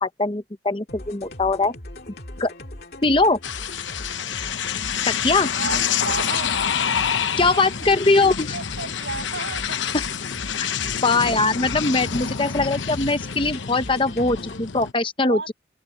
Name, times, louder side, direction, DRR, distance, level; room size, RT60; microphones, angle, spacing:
voice 1, 0.0-1.7 2.4-2.5 3.0-3.4 5.2-5.5 7.4-8.5 9.9-10.0 11.0-15.5, left 3 dB, 25° left, 0.9 m, -21 dB
sound 1, 0.9-14.6, left 1 dB, 55° left, 2.4 m, -39 dB
sound 2, 3.4-14.9, left 7 dB, 80° left, 0.9 m, -27 dB
voice 2, 5.6-6.6 7.3-8.0 8.5-9.8 15.2-15.5, right 3 dB, 70° right, 7.4 m, -33 dB
open air
head